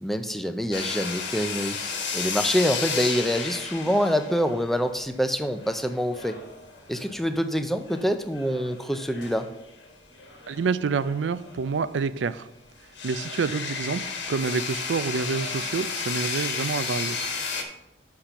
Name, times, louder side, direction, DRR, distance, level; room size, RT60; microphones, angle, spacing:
voice 1, 0.0-1.8 2.1-6.4 6.9-9.5, equal, ahead, 8 dB, 0.4 m, -26 dB
sound 1, 0.7-7.3 7.9-8.1 8.3-11.9 12.2-12.3 13.0-17.6, left 5 dB, 75° left, 1.3 m, -33 dB
voice 2, 10.5-12.5 13.0-17.3, right 5 dB, 80° right, 15 dB, 0.4 m, -28 dB
6.6 x 5.8 x 5.8 m, 0.88 s
head